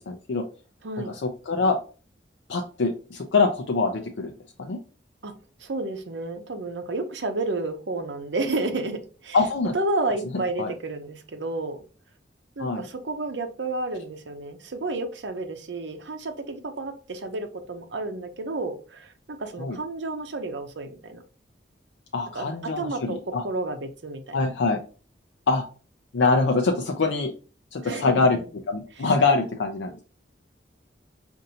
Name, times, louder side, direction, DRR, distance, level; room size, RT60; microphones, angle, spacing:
voice 1, 0.1-0.4 1.1-1.8 2.5-4.3 4.6-4.8 9.3-9.7 10.6-10.7 12.6-12.8 19.6-19.8 22.1-23.4 24.3-24.8 25.5-25.6 26.1-27.3 27.7-28.4 28.7-30.0, left 3 dB, 85° left, 3 dB, 0.5 m, -24 dB
voice 2, 5.6-9.4 9.7-11.8 12.6-21.2 22.3-23.2 23.4-24.5 27.8-28.3 29.0-29.1, right 2 dB, 75° right, 7 dB, 0.7 m, -31 dB
5.2 x 2.6 x 2.7 m, 0.37 s
head